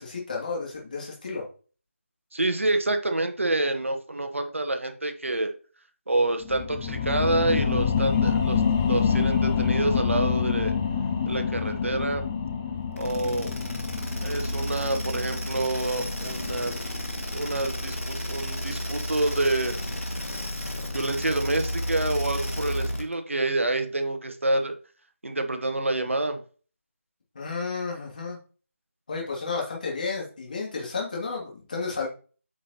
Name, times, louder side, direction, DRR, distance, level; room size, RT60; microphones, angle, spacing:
voice 1, 0.0-1.4 27.3-28.4 29.1-32.1, left 4 dB, 35° left, -2 dB, 2.4 m, -32 dB
voice 2, 2.3-5.5 6.1-10.7 11.3-12.3 13.0-13.5 14.2-16.8 17.3-18.0 18.3-19.7 20.8-24.7 25.2-26.4, right 2 dB, 65° right, 7 dB, 1.3 m, -27 dB
sound 1, 6.4-17.6 18.0-18.1, left 6 dB, 10° left, 0.4 m, -27 dB
sound 2, 13.0-23.1, equal, 80° left, 2.1 m, -32 dB
8.3 x 5.6 x 2.9 m, 0.38 s
figure-of-eight pair, 160°, 8 cm